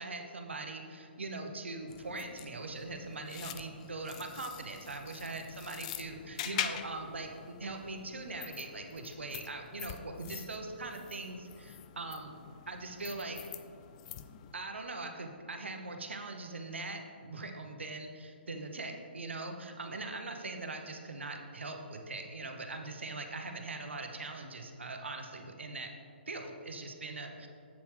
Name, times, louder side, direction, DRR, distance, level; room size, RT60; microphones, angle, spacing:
voice 1, 0.0-12.3 12.7-13.4 14.5-25.9 26.3-27.5, right 2 dB, 85° right, 4 dB, 0.8 m, -41 dB
sound 1, 1.9-14.5, left 11 dB, 35° left, 0.3 m, -45 dB
7.5 x 7.1 x 3.3 m, 2.4 s
hypercardioid pair, 135°, 6 cm